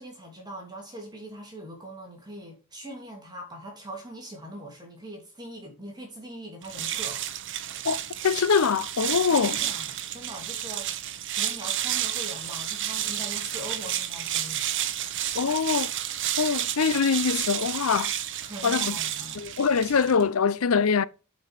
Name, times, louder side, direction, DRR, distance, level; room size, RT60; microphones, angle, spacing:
voice 1, 0.0-7.2 9.3-14.7 18.4-19.4, equal, 20° right, 2.9 m, -42 dB
sound 1, 6.6-20.3, right 11 dB, 55° right, 0.8 m, -31 dB
voice 2, 7.8-9.5 15.3-15.9 16.4-18.1 18.6-19.0 19.4-21.0, left 5 dB, 75° left, 0.6 m, -24 dB
8.2 x 5.3 x 5.8 m
head